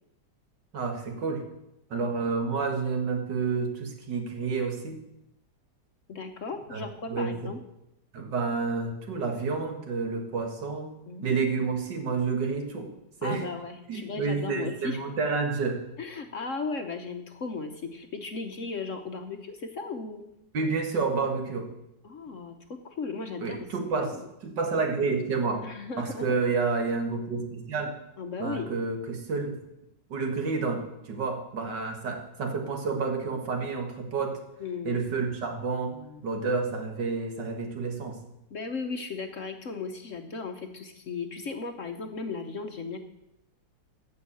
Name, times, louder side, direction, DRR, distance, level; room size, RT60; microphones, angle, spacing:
voice 1, 0.7-1.4 1.9-5.0 6.7-7.3 8.1-10.9 11.2-12.9 13.2-13.5 13.9-15.8 20.5-21.7 23.4-24.1 24.4-25.7 26.0-28.0 28.4-29.6 30.1-34.4 34.8-36.0 36.2-38.2, right 4 dB, 70° right, 4 dB, 2.3 m, -29 dB
voice 2, 6.1-7.6 11.1-11.6 13.2-15.0 16.0-20.2 22.0-24.3 25.6-26.4 28.2-28.7 34.6-35.0 35.9-36.2 38.5-43.0, left 4 dB, 50° left, 6 dB, 1.1 m, -36 dB
14.5 x 5.6 x 8.4 m, 0.85 s
omnidirectional pair, 2.0 m